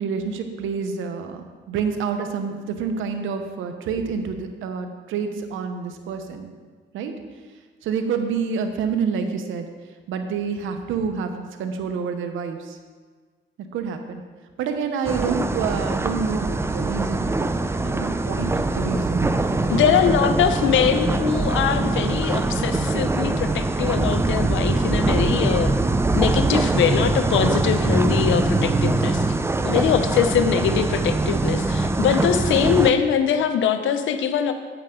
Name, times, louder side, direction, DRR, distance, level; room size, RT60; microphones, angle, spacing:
voice 1, 0.0-6.5 6.9-7.1 7.8-9.7 10.1-12.8 13.7-14.2 14.6-17.5 17.8-19.3 19.7-20.0 20.3-20.4, right 6 dB, 85° right, 6 dB, 0.9 m, -28 dB
sound 1, 15.0-32.9, right 2 dB, 15° right, 0.5 m, -23 dB
voice 2, 19.7-25.7 26.1-29.2 29.6-34.5, left 8 dB, 75° left, 9 dB, 0.7 m, -22 dB
8.7 x 8.2 x 3.7 m, 1.5 s
cardioid pair, 90°, 20 cm